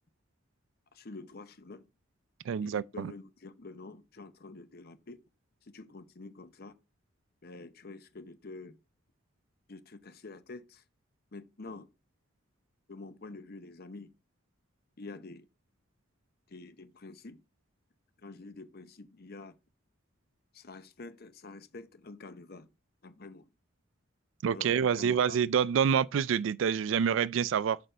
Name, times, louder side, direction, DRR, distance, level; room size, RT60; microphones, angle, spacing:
voice 1, 0.9-1.9 2.6-5.2 5.6-6.7 7.4-8.8 9.7-10.8 11.3-11.9 12.9-14.1 15.0-15.5 16.5-17.4 18.2-19.5 20.5-22.7 23.0-23.5 24.5-25.4, left 3 dB, 50° left, 0.7 m, -47 dB
voice 2, 2.5-3.1 24.4-27.8, right 7 dB, 65° right, 0.3 m, -27 dB
6.6 x 5.2 x 4.4 m
head